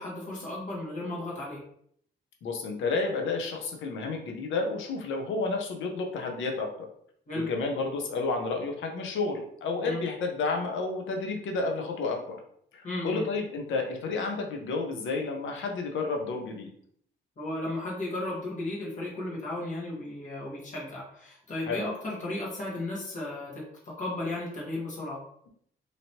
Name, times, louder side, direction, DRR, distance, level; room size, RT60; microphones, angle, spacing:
voice 1, 0.0-1.6 7.3-7.5 9.8-10.0 12.8-13.2 17.4-25.2, left 2 dB, 40° left, -5 dB, 1.4 m, -35 dB
voice 2, 2.4-6.9 7.3-12.4 12.7-16.7 21.7-21.8, left 3 dB, 75° left, 2 dB, 0.8 m, -31 dB
3.0 x 2.9 x 2.8 m, 0.66 s
cardioid pair, 90°, 20 cm